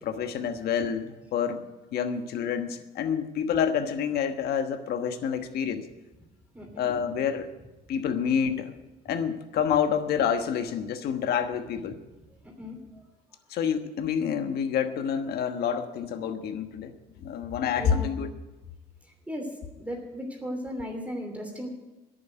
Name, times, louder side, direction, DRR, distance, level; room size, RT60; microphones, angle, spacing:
voice 1, 0.0-1.6 1.9-5.9 6.8-7.5 7.9-8.7 9.0-12.0 13.5-16.9 17.2-18.3, left 7 dB, 70° left, 8 dB, 1.3 m, -28 dB
voice 2, 6.5-6.9 12.4-13.0 17.7-18.1 19.3-19.5 19.8-21.7, equal, 10° right, 1 dB, 2.9 m, -36 dB
11.0 x 9.1 x 9.2 m, 1.1 s
cardioid pair, 110°, 17 cm